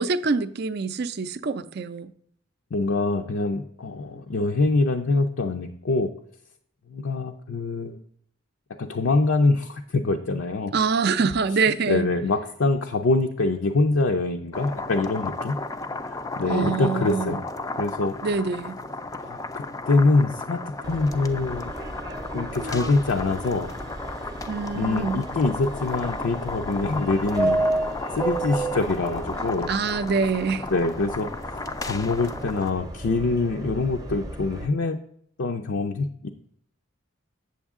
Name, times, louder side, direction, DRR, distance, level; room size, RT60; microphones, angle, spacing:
voice 1, 0.0-2.1 10.7-12.1 16.5-17.3 18.2-18.8 24.5-25.3 29.7-30.7, right 4 dB, 50° right, 0.4 m, -25 dB
voice 2, 2.7-6.1 6.9-8.0 8.8-10.7 11.9-15.6 16.0-17.5 17.7-18.1 19.2-21.7 22.3-23.7 24.2-24.3 24.7-27.7 28.1-29.7 30.7-35.0 35.4-36.3, left 3 dB, 70° left, 0.5 m, -24 dB
sound 1, 14.5-32.7, left 3 dB, 15° left, 0.3 m, -34 dB
Subway metro underground, 20.8-34.7, right 2 dB, 15° right, 0.7 m, -33 dB
8.0 x 7.2 x 3.6 m
head